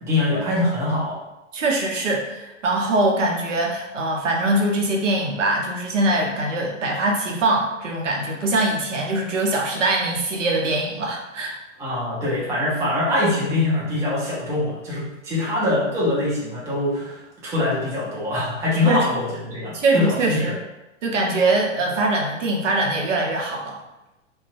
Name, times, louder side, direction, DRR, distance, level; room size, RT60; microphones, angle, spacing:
voice 1, 0.0-1.2 11.8-20.5, left 2 dB, 10° right, -7 dB, 0.4 m, -23 dB
voice 2, 1.5-11.6 18.9-19.1 19.7-20.6 21.0-23.8, right 2 dB, 75° right, 0 dB, 0.7 m, -22 dB
2.5 x 2.2 x 2.4 m, 0.98 s
figure-of-eight pair, 110°, 38 cm